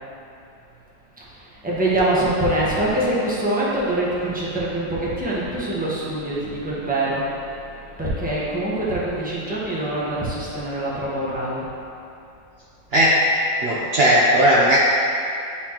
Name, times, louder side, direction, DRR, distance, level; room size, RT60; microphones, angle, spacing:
voice 1, 1.2-11.7, right 1 dB, 5° right, -7 dB, 0.8 m, -24 dB
voice 2, 13.6-14.8, equal, 75° right, -6 dB, 0.5 m, -16 dB
10.0 x 4.2 x 2.9 m, 2.6 s
omnidirectional pair, 2.0 m